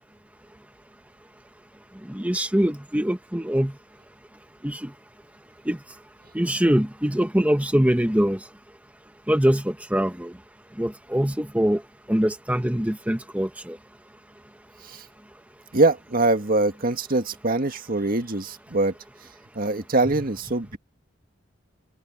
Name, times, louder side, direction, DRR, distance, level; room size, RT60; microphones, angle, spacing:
voice 1, 2.1-3.7 4.6-4.9 5.7-5.8 6.3-8.4 9.3-10.3 10.8-11.8 12.1-13.8, equal, 10° right, 1.3 m, -23 dB
voice 2, 15.7-18.9 19.6-20.8, right 2 dB, 50° right, 1.8 m, -23 dB
open air
head